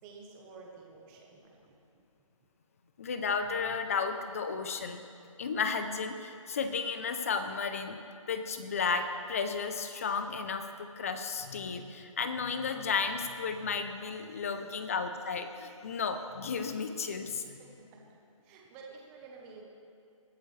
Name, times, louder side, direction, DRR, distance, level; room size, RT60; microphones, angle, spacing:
voice 1, 0.0-2.0 14.6-15.0 17.6-19.6, right 4 dB, 10° right, 0 dB, 1.1 m, -52 dB
voice 2, 3.0-5.0 5.4-8.0 8.3-17.6, left 5 dB, 25° left, 8 dB, 0.6 m, -33 dB
20.0 x 12.0 x 3.3 m, 2.6 s
hypercardioid pair, 170°, 17 cm